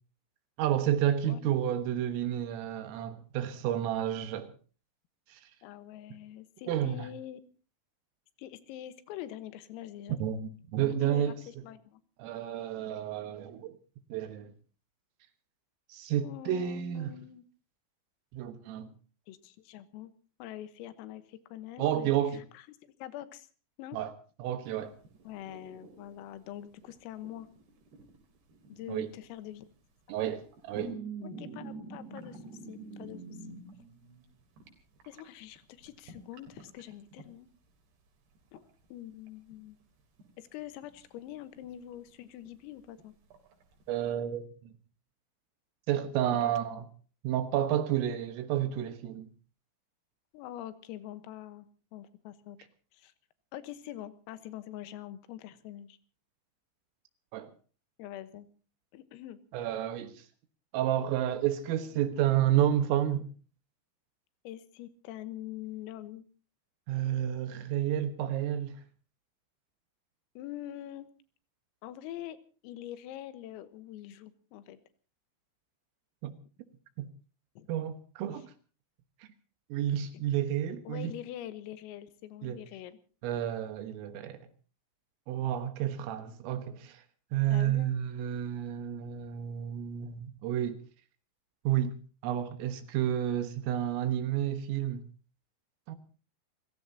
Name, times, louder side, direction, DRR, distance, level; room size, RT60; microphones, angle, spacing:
voice 1, 0.6-4.5 5.3-5.5 6.7-7.1 10.2-11.4 12.2-13.8 14.1-14.5 15.9-17.1 18.3-18.9 21.8-22.5 23.9-24.1 24.4-24.9 28.9-29.1 30.1-31.0 43.9-44.7 45.9-46.9 47.2-49.3 57.3-57.5 59.5-60.3 60.7-63.3 66.9-68.8 76.2-76.4 77.0-77.1 77.7-78.5 79.2-79.3 79.7-81.1 82.4-82.6 83.2-84.5 85.3-87.0 87.3-90.8 91.7-91.9 92.2-95.1 95.9-96.0, right 11 dB, 80° right, 3.9 m, -30 dB
voice 2, 1.3-1.6 5.6-7.4 8.4-10.2 11.0-12.0 16.2-17.4 19.3-20.1 20.4-22.1 22.6-22.7 23.0-23.5 23.8-24.0 25.3-27.5 28.7-29.7 31.2-33.4 35.1-37.5 38.5-38.6 38.9-39.8 40.4-43.1 46.4-46.5 50.3-52.6 52.9-53.1 53.5-56.0 58.0-58.5 58.9-59.4 64.5-66.2 70.4-71.1 71.8-72.4 72.6-74.8 77.6-77.7 80.9-83.0 87.5-87.9, left 12 dB, 90° left, 3.9 m, -44 dB
sound 1, 24.7-26.9 27.2-29.2 30.2-34.7 35.0-37.2 38.4-38.6 38.8-38.9 39.3-39.8 40.2-40.3 40.6-41.2 41.6-42.1 42.5-42.6 43.0-43.1 43.3-44.1, right 3 dB, 55° right, 5.2 m, -46 dB
29.5 x 16.0 x 2.8 m
omnidirectional pair, 5.9 m